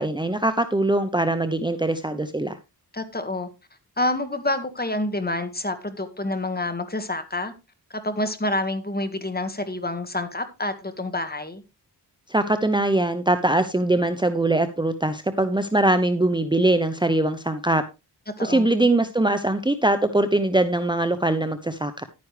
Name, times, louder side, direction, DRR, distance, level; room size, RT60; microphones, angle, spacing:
voice 1, 0.0-2.6 12.3-17.8 18.4-22.0, right 2 dB, 10° right, 0.8 m, -22 dB
voice 2, 2.9-3.5 4.0-7.5 8.0-11.6 18.4-18.7, left 2 dB, 25° left, 1.8 m, -28 dB
11.5 x 9.6 x 3.3 m
wide cardioid pair, 85°, 39 cm